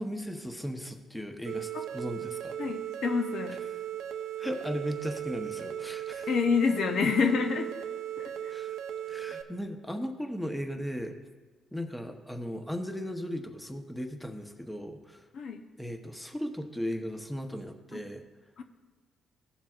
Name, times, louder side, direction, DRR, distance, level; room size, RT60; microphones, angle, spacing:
voice 1, 0.0-2.6 4.4-6.3 8.5-8.7 9.1-11.1 11.7-15.2 15.8-18.2, equal, 5° left, 5 dB, 0.9 m, -37 dB
sound 1, 1.5-9.4, right 11 dB, 85° right, 0.6 m, -37 dB
voice 2, 2.6-3.6 6.3-7.7 8.2-8.5 15.3-15.6 17.9-18.0 18.6-18.7, left 5 dB, 65° left, 6 dB, 0.7 m, -28 dB
15.5 x 7.2 x 2.4 m, 1.3 s
cardioid pair, 90°, 0 cm